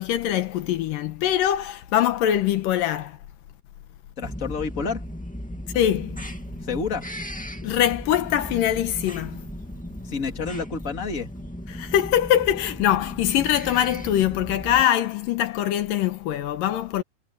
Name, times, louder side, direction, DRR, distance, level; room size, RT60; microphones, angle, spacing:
voice 1, 0.0-3.2 5.7-6.3 7.6-9.4 11.7-17.0, left 11 dB, 80° left, 2.7 m, -23 dB
voice 2, 4.2-5.0 6.6-7.1 10.0-11.3, left 5 dB, 25° left, 2.5 m, -29 dB
sound 1, 4.2-14.8, equal, 5° left, 1.0 m, -36 dB
omnidirectional pair, 3.9 m